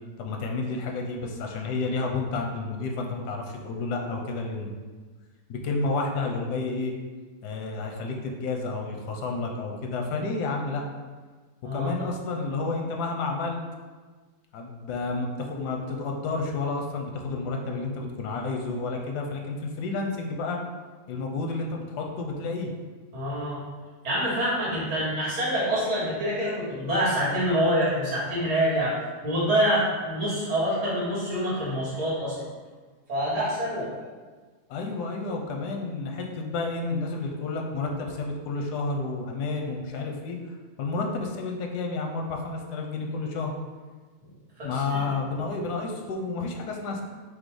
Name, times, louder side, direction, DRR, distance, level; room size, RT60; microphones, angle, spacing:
voice 1, 0.2-4.7 5.5-6.9 7.4-10.8 11.7-13.6 14.5-20.6 21.1-22.7 34.7-43.5 44.6-47.0, left 3 dB, 85° left, 2 dB, 1.2 m, -30 dB
voice 2, 11.6-12.1 23.1-23.6 24.0-28.9 29.2-32.4 33.1-33.9 44.6-45.1, equal, 85° right, -8 dB, 2.2 m, -26 dB
5.1 x 2.0 x 4.6 m, 1.4 s
omnidirectional pair, 1.7 m